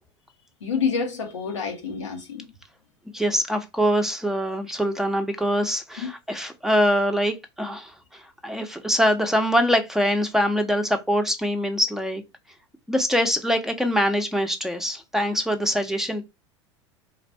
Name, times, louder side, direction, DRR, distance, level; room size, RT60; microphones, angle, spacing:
voice 1, 0.6-2.5 6.0-6.1, left 6 dB, 85° left, 1.1 m, -28 dB
voice 2, 3.1-12.2 12.9-16.2, equal, 5° right, 0.8 m, -24 dB
3.9 x 2.5 x 4.4 m
hypercardioid pair, 80°, 15 cm